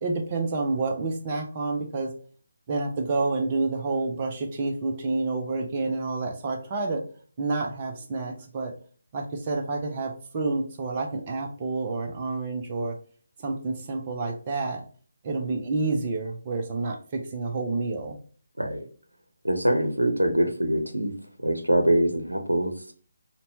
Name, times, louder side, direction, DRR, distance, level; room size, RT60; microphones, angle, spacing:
voice 1, 0.0-2.1 2.7-7.0 7.4-8.7 9.1-13.0 13.4-14.8 15.2-18.2, right 3 dB, 30° right, 0.5 m, -29 dB
voice 2, 19.4-21.1 21.4-22.9, right 1 dB, 85° right, 0.6 m, -24 dB
4.0 x 2.2 x 2.7 m
figure-of-eight pair, 150°, 0 cm